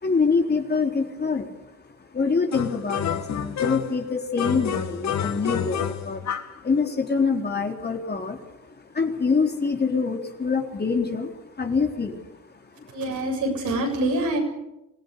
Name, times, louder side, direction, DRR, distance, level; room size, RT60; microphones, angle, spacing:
voice 1, 0.0-1.5 2.1-6.3 6.6-8.4 8.9-11.3 11.6-12.2, left 4 dB, 35° left, 3 dB, 3.9 m, -25 dB
sound 1, 2.5-4.0 4.4-6.6, left 8 dB, 65° left, 2.0 m, -29 dB
voice 2, 12.9-14.4, right 1 dB, 75° right, 2 dB, 7.5 m, -25 dB
26.0 x 16.5 x 8.3 m, 0.89 s
cardioid pair, 90°, 30 cm